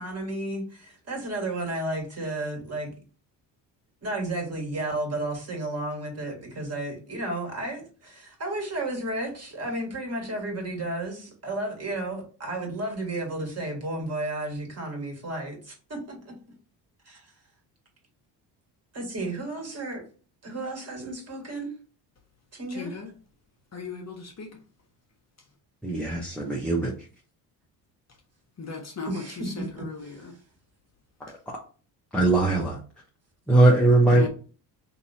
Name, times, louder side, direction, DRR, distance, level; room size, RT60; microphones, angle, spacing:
voice 1, 0.0-2.9 4.0-16.3 17.1-17.3 18.9-20.0 20.4-21.7 22.5-22.9 29.1-30.3, right 2 dB, 30° right, 1.7 m, -33 dB
voice 2, 22.7-23.1 23.7-24.6 28.6-30.3 34.1-34.3, left 5 dB, 35° left, 1.1 m, -37 dB
voice 3, 25.8-26.9 31.2-31.3 32.1-32.8 33.5-34.3, right 2 dB, ahead, 0.9 m, -20 dB
3.0 x 2.8 x 4.1 m
supercardioid pair, 70°, 47 cm